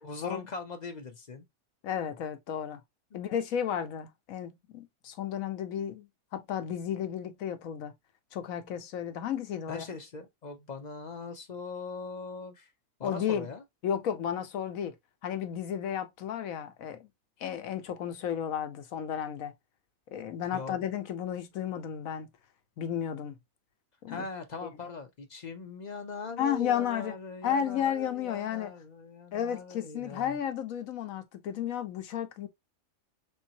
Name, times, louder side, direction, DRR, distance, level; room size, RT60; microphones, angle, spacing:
voice 1, 0.0-1.4 3.1-3.2 9.7-12.7 13.0-13.6 20.5-20.8 24.1-30.4, left 4 dB, 40° left, 0.7 m, -41 dB
voice 2, 1.8-2.8 3.1-7.9 8.3-9.9 13.0-13.5 13.8-14.9 15.2-17.1 17.4-19.5 20.1-22.3 22.8-23.4 24.0-24.2 26.4-27.1 27.4-28.7 29.3-32.5, left 9 dB, 75° left, 1.2 m, -33 dB
4.6 x 3.6 x 2.8 m
omnidirectional pair, 1.5 m